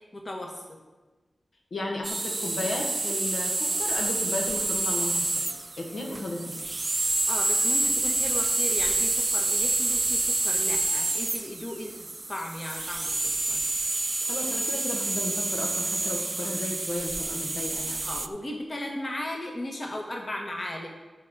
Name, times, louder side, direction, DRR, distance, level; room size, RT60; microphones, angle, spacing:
voice 1, 0.1-0.8 7.3-11.9 12.3-13.6 18.0-20.9, left 1 dB, 35° left, 1 dB, 1.3 m, -36 dB
voice 2, 1.7-5.3 5.8-6.6 14.3-18.0, left 1 dB, 85° left, 0 dB, 1.7 m, -34 dB
sound 1, 2.0-18.3, right 2 dB, 35° right, 0.4 m, -28 dB
11.0 x 4.7 x 6.6 m, 1.2 s
wide cardioid pair, 110°, 0 cm